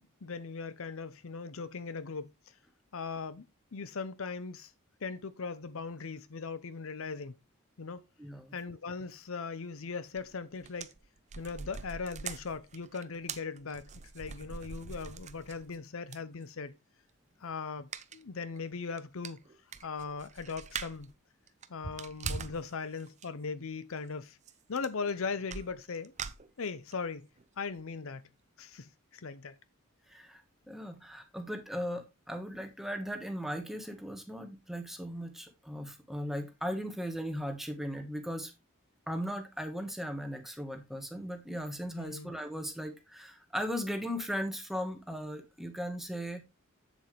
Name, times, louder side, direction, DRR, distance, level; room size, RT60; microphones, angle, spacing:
voice 1, 0.0-2.3 2.9-3.4 3.7-4.7 5.0-7.3 7.8-8.0 8.5-10.9 11.4-13.9 14.1-16.7 17.4-19.4 19.8-21.1 21.7-24.4 24.7-26.1 26.6-27.3 27.6-28.3 28.6-29.6 42.0-42.3, left 4 dB, 65° left, 0.7 m, -39 dB
voice 2, 8.2-8.5 30.1-38.5 39.1-46.5, equal, ahead, 1.4 m, -37 dB
sound 1, 10.2-10.3 10.6-15.8 16.1-16.2 17.9-18.2 18.6-18.7 19.0-19.1 19.2-21.1 21.5-22.7 23.0-23.3 24.5-24.6 24.8-25.1 25.5-26.9 27.4-27.5 27.8-27.9, right 6 dB, 35° right, 0.6 m, -42 dB
8.2 x 7.3 x 3.3 m
head